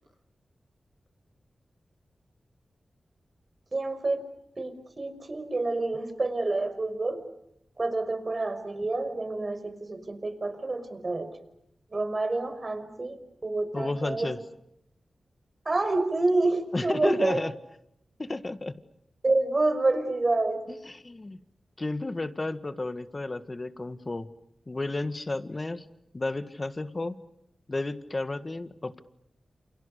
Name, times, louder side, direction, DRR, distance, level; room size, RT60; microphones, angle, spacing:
voice 1, 3.7-4.3 4.6-7.2 7.8-11.4 11.9-13.2 13.4-14.3 15.7-17.4 19.2-20.6, right 2 dB, 40° right, 9 dB, 5.6 m, -28 dB
voice 2, 13.7-14.4 16.7-17.5 18.2-18.8 20.8-21.4 21.8-24.3 24.7-25.9 26.1-27.2 27.7-29.0, left 2 dB, 35° left, 11 dB, 1.8 m, -32 dB
29.5 x 29.0 x 6.8 m, 0.80 s
cardioid pair, 65°, 0 cm